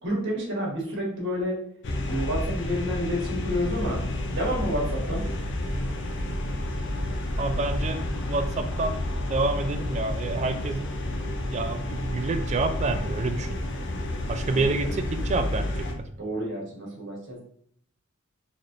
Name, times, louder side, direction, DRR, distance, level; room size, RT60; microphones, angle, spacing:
voice 1, 0.0-1.6 2.1-5.2 14.5-14.9 16.2-17.4, equal, 55° right, -2 dB, 1.3 m, -30 dB
sound 1, 1.8-15.9, left 1 dB, 55° left, 0.6 m, -30 dB
voice 2, 7.4-10.9 11.5-13.6 14.3-16.1, right 3 dB, 30° right, 7 dB, 0.3 m, -28 dB
4.1 x 3.1 x 2.6 m, 0.65 s
head